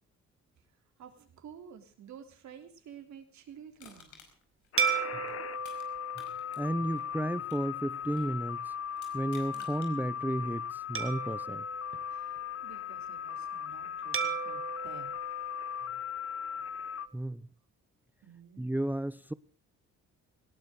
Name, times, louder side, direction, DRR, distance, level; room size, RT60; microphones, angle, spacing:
voice 1, 1.0-4.2 12.1-15.2 18.2-18.7, right 8 dB, 70° right, 3.4 m, -51 dB
Crushing, 3.8-5.9 6.1-8.4 8.9-9.9 10.4-10.5, left 6 dB, 80° left, 5.1 m, -55 dB
sound 1, 4.7-17.1, left 8 dB, 50° left, 1.0 m, -38 dB
sound 2, 4.8-7.5 8.0-8.2 11.0-12.7 14.1-16.4, right 7 dB, 45° right, 2.1 m, -36 dB
voice 2, 6.6-8.7 9.1-11.6 17.1-17.4 18.6-19.3, right 1 dB, 5° right, 0.7 m, -33 dB
19.5 x 17.5 x 3.8 m
cardioid pair, 90°, 30 cm